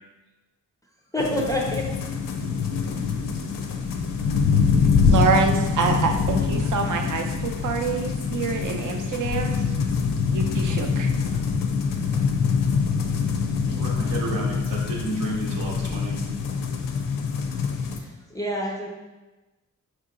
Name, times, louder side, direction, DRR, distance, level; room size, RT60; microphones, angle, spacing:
voice 1, 1.1-1.8 18.3-18.9, left 1 dB, 10° left, -1 dB, 0.3 m, -26 dB
sound 1, 1.2-18.0, left 5 dB, 80° left, 0.5 m, -24 dB
voice 2, 4.8-9.6 10.3-11.3, right 5 dB, 65° right, 4 dB, 0.5 m, -26 dB
voice 3, 13.7-16.2, right 2 dB, 90° right, -2 dB, 0.9 m, -31 dB
4.7 x 2.8 x 2.5 m, 1.1 s
wide cardioid pair, 145°, 33 cm